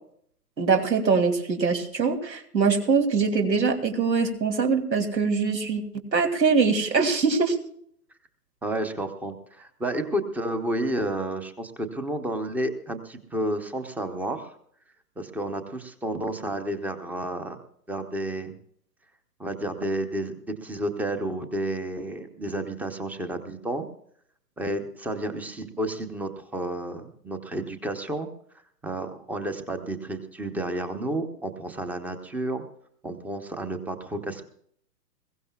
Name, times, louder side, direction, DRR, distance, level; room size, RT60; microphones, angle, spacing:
voice 1, 0.6-5.8 6.1-7.6, right 5 dB, 85° right, 4 dB, 2.8 m, -23 dB
voice 2, 8.6-14.5 15.2-17.6 17.9-18.5 19.4-23.8 24.6-28.3 28.8-32.6 33.0-34.5, right 1 dB, 5° right, 9 dB, 0.7 m, -31 dB
21.5 x 16.5 x 2.3 m, 0.65 s
hypercardioid pair, 125°, 49 cm